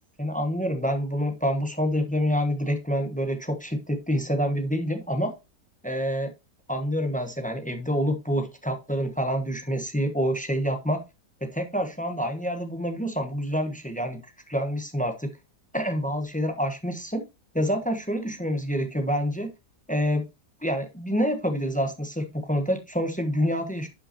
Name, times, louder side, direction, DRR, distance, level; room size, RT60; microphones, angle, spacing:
voice 1, 0.2-5.3 5.8-6.3 6.7-11.0 11.4-15.3 15.7-17.2 17.5-19.5 19.9-20.3 20.6-23.9, equal, 5° left, 6 dB, 0.9 m, -27 dB
11.0 x 5.5 x 2.9 m, 0.25 s
omnidirectional pair, 1.8 m